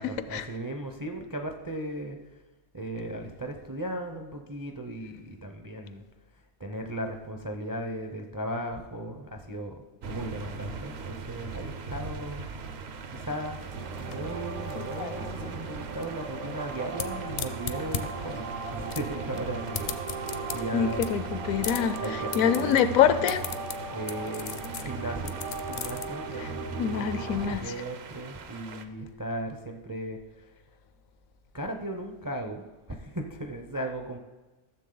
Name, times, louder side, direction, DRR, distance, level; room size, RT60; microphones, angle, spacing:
voice 1, 0.0-2.2 2.7-6.0 6.6-12.4 13.1-13.7 14.0-21.1 22.0-23.0 23.9-25.4 25.7-30.5 31.5-34.2, right 1 dB, 25° right, 0.4 m, -37 dB
sound 1, 10.0-28.9, right 5 dB, 55° right, 0.8 m, -41 dB
sound 2, 13.5-26.0, left 7 dB, 60° left, 0.7 m, -39 dB
sound 3, 13.7-27.6, right 4 dB, 80° right, 1.4 m, -37 dB
voice 2, 20.7-23.4 26.4-26.5 26.8-27.7, left 8 dB, 75° left, 1.0 m, -25 dB
13.5 x 7.1 x 3.9 m
omnidirectional pair, 1.5 m